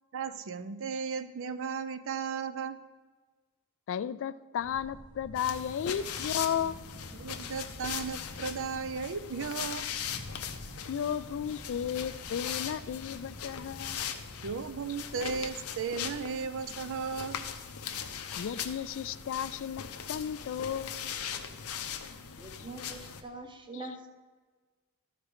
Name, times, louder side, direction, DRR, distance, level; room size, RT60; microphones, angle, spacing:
voice 1, 0.1-2.8 7.2-9.9 14.4-17.5 17.9-18.0, right 5 dB, 60° right, 0.5 m, -35 dB
voice 2, 3.9-6.8 10.9-14.0 18.4-21.1 23.7-23.9, left 8 dB, 60° left, 0.3 m, -34 dB
sound 1, 4.6-15.4, equal, 80° right, 2.2 m, -50 dB
sound 2, 5.3-23.2, left 8 dB, 80° left, 0.7 m, -40 dB
voice 3, 22.4-24.1, right 2 dB, 20° right, 0.9 m, -43 dB
12.5 x 5.0 x 4.8 m
head